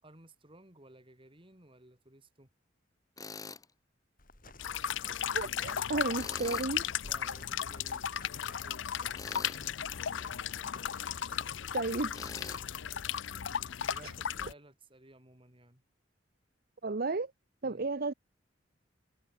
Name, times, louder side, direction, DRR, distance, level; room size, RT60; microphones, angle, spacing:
voice 1, 0.0-2.5 7.0-8.1 8.6-8.9 13.9-15.8 17.6-17.9, right 1 dB, 25° right, 4.4 m, -56 dB
Tools, 3.2-3.6 6.1-6.7 9.1-9.7 12.1-12.6, left 4 dB, 20° left, 2.6 m, -44 dB
Walk footsteps, 4.2-12.8, left 4 dB, 45° left, 4.0 m, -54 dB
sound 1, 4.6-14.5, left 9 dB, 75° left, 0.6 m, -36 dB
voice 2, 5.3-6.8 11.7-12.1 13.9-14.0 16.8-17.3 17.6-18.1, right 3 dB, 50° right, 0.8 m, -33 dB
head